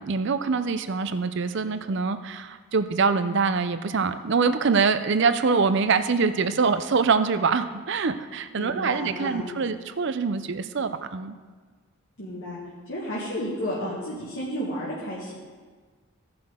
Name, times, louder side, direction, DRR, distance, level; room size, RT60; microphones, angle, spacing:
voice 1, 0.0-11.4, right 5 dB, 55° right, 10 dB, 0.5 m, -24 dB
voice 2, 8.6-9.5 12.2-12.6 12.9-15.3, equal, 55° left, -7 dB, 1.8 m, -32 dB
16.5 x 6.0 x 3.7 m, 1.5 s
head